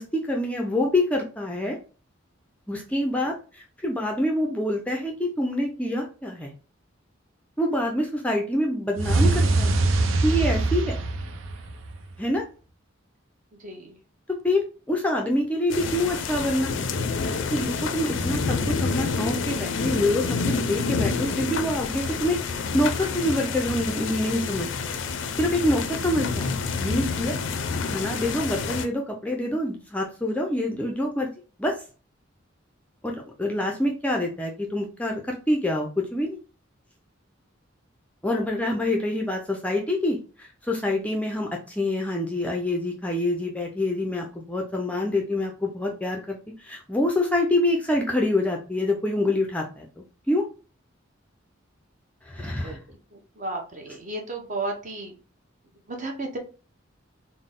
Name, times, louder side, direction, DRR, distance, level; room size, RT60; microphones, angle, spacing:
voice 1, 0.0-1.8 2.7-6.5 7.6-9.7 10.2-11.0 12.2-12.4 14.4-16.7 17.5-24.7 25.4-26.5 26.8-27.3 27.9-31.3 31.6-31.7 33.0-36.4 38.2-49.9 50.3-50.5 52.2-52.8, left 1 dB, 5° left, 1 dB, 0.4 m, -26 dB
sound 1, 9.0-12.1, right 2 dB, 80° right, 0.5 m, -23 dB
voice 2, 13.6-14.0 38.5-38.6 52.3-55.2 55.9-56.4, right 2 dB, 40° right, 2 dB, 0.8 m, -34 dB
sound 2, 15.7-28.9, left 4 dB, 65° left, 0.4 m, -28 dB
3.8 x 2.1 x 3.6 m, 0.36 s
head